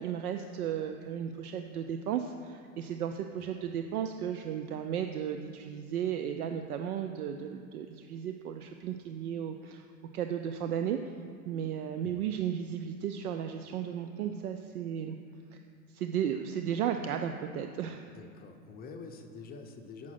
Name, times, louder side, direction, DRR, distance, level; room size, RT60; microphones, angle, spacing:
voice 1, 0.0-9.8 10.1-11.0 11.4-15.2 15.5-15.6 15.9-18.0, right 9 dB, 70° right, 7 dB, 0.6 m, -34 dB
voice 2, 18.1-20.1, left 4 dB, 20° left, 5 dB, 0.6 m, -47 dB
7.6 x 5.9 x 5.8 m, 2.4 s
hypercardioid pair, 105°, 45 cm